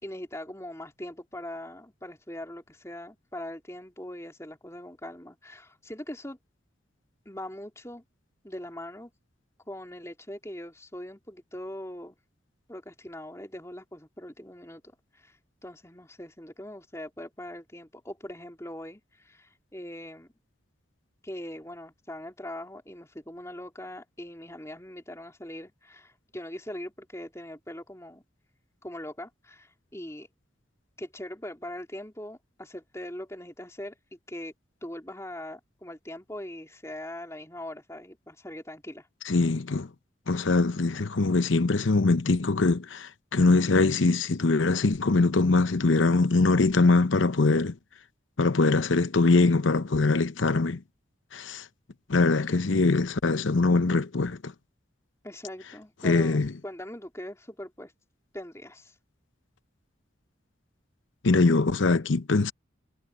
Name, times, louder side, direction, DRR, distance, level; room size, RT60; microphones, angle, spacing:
voice 1, 0.0-6.4 7.3-8.0 8.4-9.1 9.7-12.2 12.7-20.3 21.2-28.2 28.8-30.3 31.0-34.5 34.8-39.1 55.2-57.9 58.3-58.9, left 1 dB, 15° left, 3.8 m, -41 dB
voice 2, 39.3-39.9 40.3-47.7 48.4-50.8 51.3-51.6 52.1-54.5 56.0-56.5 61.2-62.5, left 3 dB, 85° left, 0.8 m, -23 dB
head